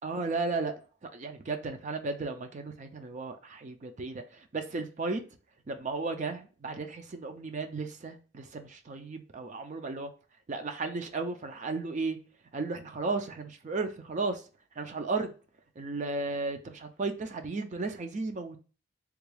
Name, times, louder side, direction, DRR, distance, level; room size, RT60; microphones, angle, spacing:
voice 1, 0.0-0.7 1.1-5.2 5.7-10.1 10.5-12.2 12.5-14.4 14.8-15.3 15.8-18.6, right 3 dB, 40° right, 6 dB, 0.4 m, -34 dB
3.5 x 2.3 x 3.2 m, 0.36 s
head